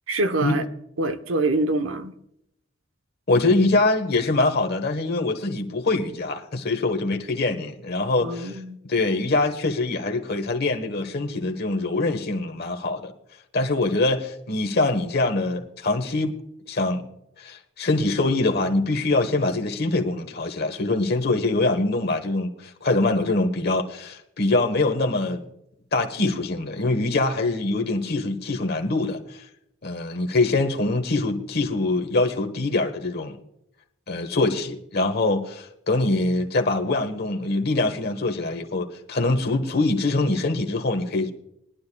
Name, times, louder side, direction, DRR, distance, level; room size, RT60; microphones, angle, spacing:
voice 1, 0.1-0.6 1.0-2.1 8.2-8.8, right 2 dB, 75° right, 0.9 m, -25 dB
voice 2, 3.3-8.6 8.8-13.1 13.5-16.3 16.7-17.0 17.4-25.4 25.9-29.4 29.8-33.4 34.1-41.3, left 2 dB, 50° left, 1.2 m, -24 dB
20.5 x 11.5 x 2.3 m
head